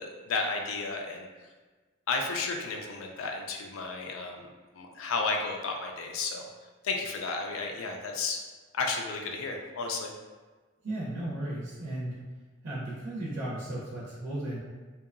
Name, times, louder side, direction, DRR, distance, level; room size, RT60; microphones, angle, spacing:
voice 1, 0.0-1.5 2.1-4.5 4.7-6.5 6.8-8.4 8.7-10.1, left 4 dB, 85° left, 2 dB, 0.4 m, -33 dB
voice 2, 10.8-12.2 12.6-14.6, right 1 dB, 70° right, -7 dB, 0.6 m, -35 dB
2.7 x 2.2 x 2.4 m, 1.3 s
head